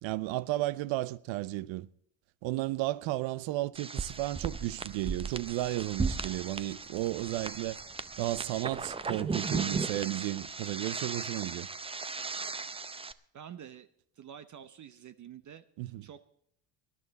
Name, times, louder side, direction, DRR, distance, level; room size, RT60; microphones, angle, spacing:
voice 1, 0.0-1.9 2.4-7.8 8.2-11.7 15.8-16.0, right 17 dB, 70° right, 0.8 m, -33 dB
sound 1, 3.7-13.1, right 4 dB, 10° right, 0.6 m, -36 dB
voice 2, 13.3-13.9 14.2-15.6 16.0-16.2, right 9 dB, 40° right, 0.9 m, -48 dB
19.5 x 11.0 x 4.1 m
supercardioid pair, 105°, 48 cm